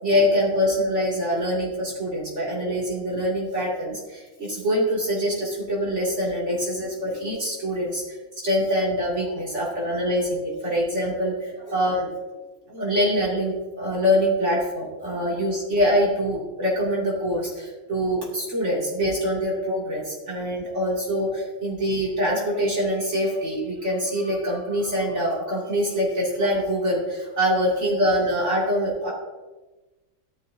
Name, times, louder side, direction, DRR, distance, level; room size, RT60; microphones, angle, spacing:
voice 1, 0.0-12.1 12.7-29.1, equal, 55° right, -6 dB, 3.0 m, -24 dB
14.5 x 12.0 x 2.7 m, 1.2 s
omnidirectional pair, 1.5 m